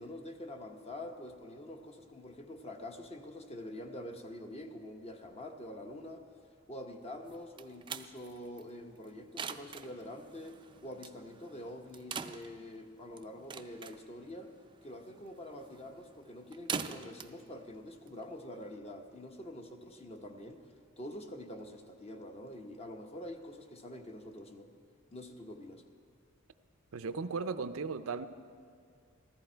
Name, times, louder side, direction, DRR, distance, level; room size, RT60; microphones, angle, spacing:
voice 1, 0.0-6.2 6.7-14.5 14.8-20.6 21.0-24.7 25.1-25.8, left 1 dB, 30° left, 4 dB, 1.0 m, -46 dB
sound 1, 7.3-18.7, right 6 dB, 25° right, 0.4 m, -45 dB
voice 2, 26.9-28.3, right 4 dB, 85° right, 11 dB, 0.5 m, -36 dB
14.5 x 14.0 x 4.5 m, 2.3 s
head